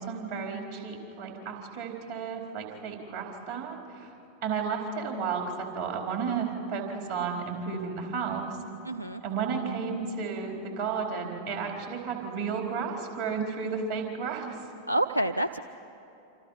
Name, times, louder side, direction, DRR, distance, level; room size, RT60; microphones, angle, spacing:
voice 1, 0.0-4.1 4.4-8.6 9.2-14.6, right 5 dB, 55° right, 1 dB, 4.3 m, -33 dB
voice 2, 8.8-9.2 14.9-15.6, right 1 dB, 85° right, 11 dB, 0.5 m, -27 dB
27.0 x 27.0 x 5.9 m, 2.9 s
figure-of-eight pair, 90°, 0 cm